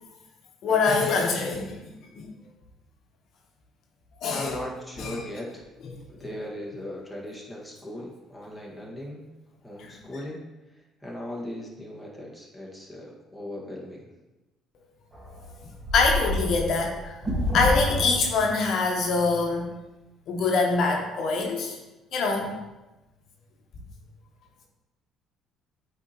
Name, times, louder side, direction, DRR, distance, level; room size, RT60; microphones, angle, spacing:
voice 1, 0.6-1.7 2.1-2.3 4.2-4.6 5.0-5.2 6.2-6.3 9.8-9.9 15.9-17.1 17.5-19.7 20.3-21.7 22.1-22.6, left 4 dB, 65° left, 1 dB, 1.0 m, -24 dB
voice 2, 4.3-5.6 6.1-9.2 9.6-10.4 11.0-14.0, left 1 dB, ahead, -4 dB, 1.7 m, -38 dB
sound 1, 15.1-18.6, left 1 dB, 20° right, 1.7 m, -28 dB
8.4 x 4.3 x 3.0 m, 1.0 s
cardioid pair, 95°, 0 cm